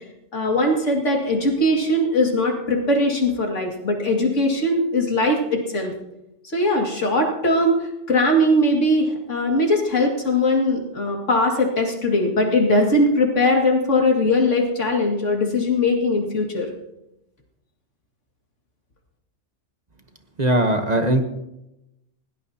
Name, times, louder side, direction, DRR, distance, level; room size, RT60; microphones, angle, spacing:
voice 1, 0.3-5.9 6.5-7.8 8.1-16.7, left 1 dB, 85° left, 1 dB, 2.6 m, -20 dB
voice 2, 20.4-21.3, right 1 dB, 35° right, 6 dB, 1.1 m, -19 dB
20.5 x 17.0 x 2.9 m, 0.89 s
omnidirectional pair, 1.2 m